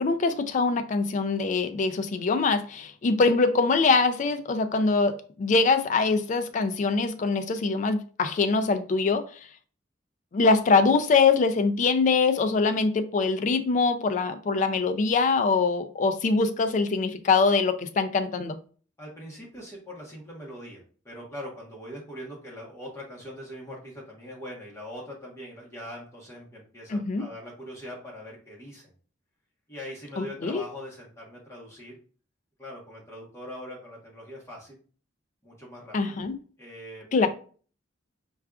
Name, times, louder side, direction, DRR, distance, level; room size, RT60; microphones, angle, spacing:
voice 1, 0.0-9.2 10.3-18.6 26.9-27.3 30.2-30.6 35.9-36.4 37.1-37.3, left 4 dB, 40° left, 0.3 m, -23 dB
voice 2, 19.0-28.8 29.7-32.0 32.6-34.8 35.4-36.2 36.6-37.3, equal, 15° left, 1.1 m, -42 dB
4.5 x 2.4 x 2.3 m
head